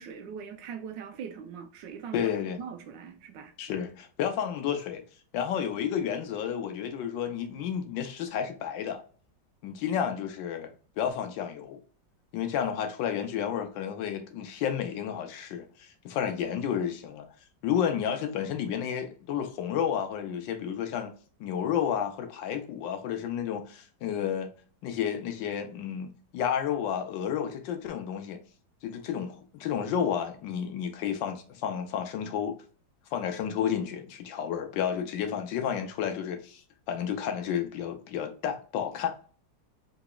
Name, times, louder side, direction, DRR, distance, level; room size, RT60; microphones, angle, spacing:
voice 1, 0.0-2.3 2.6-3.5, right 7 dB, 80° right, 1.3 m, -41 dB
voice 2, 2.1-2.6 3.6-5.0 5.3-9.0 9.6-11.8 12.3-17.2 17.6-24.5 24.8-28.4 28.8-32.6 33.1-39.1, left 8 dB, 85° left, 1.4 m, -31 dB
3.9 x 2.9 x 2.2 m
omnidirectional pair, 2.0 m